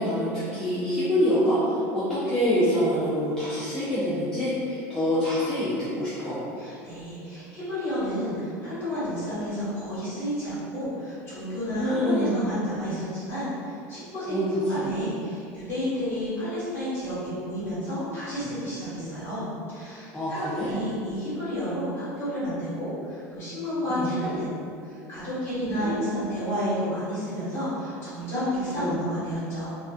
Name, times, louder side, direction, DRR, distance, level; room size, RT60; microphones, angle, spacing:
voice 1, 0.0-1.6 1.9-6.4 11.8-12.5 14.3-14.5 14.8-14.9 19.0-19.2 20.1-20.7 23.9-24.1 25.7-26.2 28.8-29.0, equal, 5° left, -12 dB, 0.4 m, -26 dB
voice 2, 6.6-29.7, equal, 30° left, -12 dB, 1.4 m, -31 dB
2.3 x 2.3 x 2.3 m, 2.4 s
supercardioid pair, 140°, 8 cm